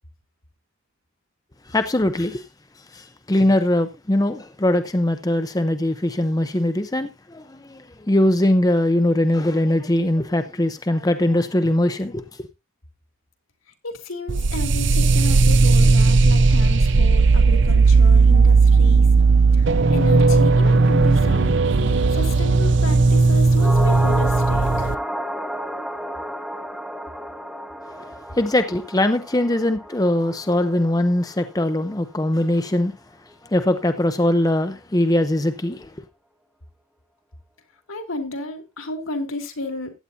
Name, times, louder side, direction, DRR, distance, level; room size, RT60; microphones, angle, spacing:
voice 1, 1.7-2.5 2.9-12.2 28.3-32.9 33.4-35.9, left 1 dB, 15° left, 0.6 m, -21 dB
voice 2, 13.8-19.1 19.5-21.6 22.1-25.0 37.9-39.9, left 2 dB, 75° left, 2.5 m, -32 dB
sound 1, 14.3-25.0, right 4 dB, 55° right, 0.5 m, -16 dB
sound 2, 23.5-32.0 32.3-32.4, equal, ahead, 0.9 m, -31 dB
15.5 x 9.6 x 2.7 m
head